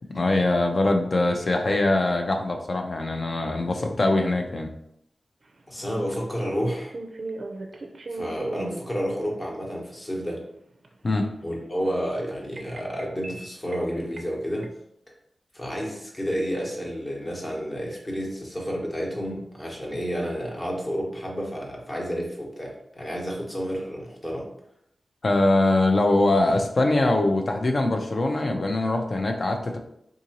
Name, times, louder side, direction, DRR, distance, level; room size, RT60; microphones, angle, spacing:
voice 1, 0.1-4.7 11.0-11.3 25.2-29.8, left 2 dB, 45° left, 4 dB, 0.5 m, -22 dB
sound 1, 5.4-9.4 10.0-12.0 12.6-13.9 14.2-14.3 14.6-14.7, right 2 dB, 50° right, 0.4 m, -38 dB
voice 2, 5.7-6.9 8.1-10.4 11.4-14.7 15.5-24.5, equal, 25° left, -2 dB, 1.0 m, -30 dB
3.7 x 2.6 x 2.9 m, 0.73 s
wide cardioid pair, 115°, 0 cm